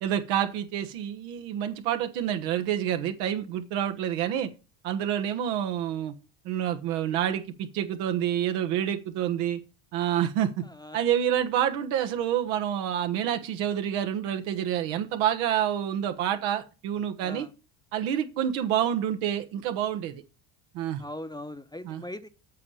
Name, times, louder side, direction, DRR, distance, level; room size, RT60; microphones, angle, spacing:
voice 1, 0.0-4.5 4.8-6.1 6.4-7.4 7.7-9.6 9.9-10.6 10.9-17.5 17.9-20.2 20.7-21.0 21.8-22.0, right 10 dB, 80° right, 1.4 m, -28 dB
voice 2, 21.0-22.3, left 1 dB, 10° left, 0.8 m, -39 dB
8.5 x 5.0 x 7.2 m
supercardioid pair, 85°, 48 cm